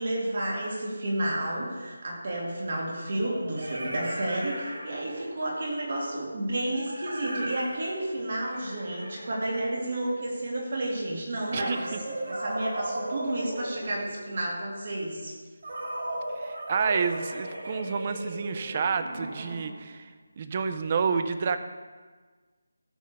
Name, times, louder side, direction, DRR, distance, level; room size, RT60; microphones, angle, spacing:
voice 1, 0.0-15.4, right 1 dB, 35° right, -2 dB, 2.4 m, -31 dB
sound 1, 1.6-1.7 3.1-5.5 6.7-10.2 11.4-14.5 15.6-19.9, right 1 dB, 55° right, 3.0 m, -37 dB
voice 2, 11.5-12.0 16.4-20.1 20.4-21.6, right 5 dB, 20° right, 10 dB, 0.4 m, -29 dB
15.0 x 5.3 x 6.7 m, 1.4 s
figure-of-eight pair, 180°, 0 cm